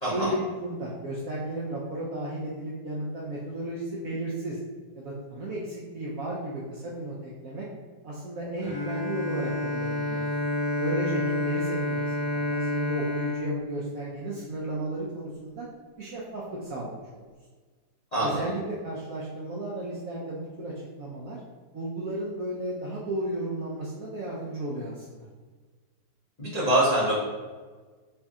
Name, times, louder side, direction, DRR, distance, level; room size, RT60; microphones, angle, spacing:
voice 1, 0.1-4.6 4.9-7.7 8.0-10.2 10.8-15.7 16.0-17.2 18.2-21.4 21.7-25.3, right 1 dB, 70° right, -5 dB, 0.8 m, -34 dB
Bowed string instrument, 8.6-14.6, left 1 dB, 15° left, 1.3 m, -30 dB
voice 2, 18.1-18.4 26.4-27.2, right 1 dB, 45° left, -10 dB, 0.5 m, -24 dB
3.3 x 2.6 x 3.5 m, 1.4 s
omnidirectional pair, 2.0 m